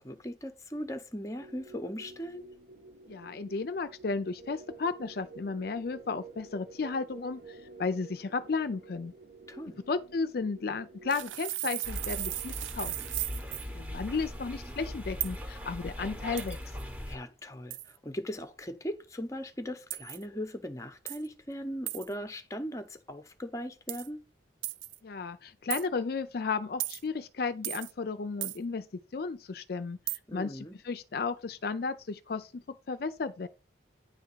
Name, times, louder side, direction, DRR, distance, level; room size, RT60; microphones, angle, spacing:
voice 1, 0.0-2.5 9.5-9.8 17.1-24.3 30.3-30.8, equal, 15° left, 0.7 m, -39 dB
sound 1, 1.4-11.4, right 3 dB, 60° right, 1.5 m, -50 dB
voice 2, 3.1-9.1 9.9-12.9 13.7-16.6 25.0-28.9 29.1-30.0 30.3-33.5, left 4 dB, 55° left, 0.4 m, -34 dB
sound 2, 11.1-13.7 15.2-15.4 16.4-16.8 17.7-18.0 19.9-20.2 21.1-21.3 21.9-22.1 23.9-24.1 24.6-25.0 25.7-25.9 26.8-27.0 27.6-27.9 28.4-28.6 30.1-30.2, right 16 dB, 90° right, 0.4 m, -36 dB
sound 3, 11.8-17.2, left 1 dB, 10° right, 0.9 m, -40 dB
9.4 x 3.5 x 5.5 m
head